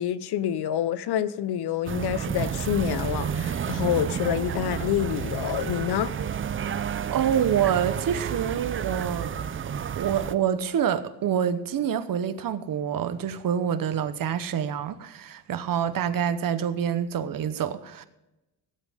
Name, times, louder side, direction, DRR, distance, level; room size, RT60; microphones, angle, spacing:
voice 1, 0.0-6.2, left 10 dB, 80° left, 0.9 m, -27 dB
sound 1, 1.9-10.3, right 8 dB, 35° right, 0.5 m, -30 dB
voice 2, 7.1-9.4 10.0-18.0, right 9 dB, 60° right, 1.0 m, -26 dB
17.5 x 8.2 x 3.6 m
cardioid pair, 110°, 38 cm